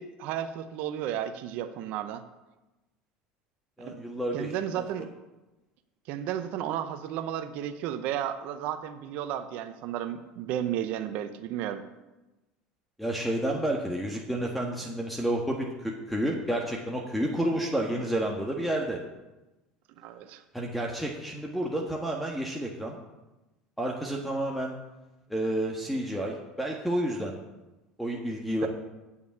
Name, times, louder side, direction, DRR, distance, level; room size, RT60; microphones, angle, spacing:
voice 1, 0.0-2.2 3.8-4.0 4.3-5.1 6.1-11.8 20.0-20.4 28.6-28.7, right 10 dB, 65° right, 9 dB, 0.9 m, -33 dB
voice 2, 3.8-4.8 13.0-19.0 20.5-23.0 23.8-24.7 25.3-27.4 28.0-28.7, right 1 dB, ahead, 0 dB, 1.5 m, -30 dB
8.6 x 7.2 x 8.5 m, 1.1 s
supercardioid pair, 100°, 3 cm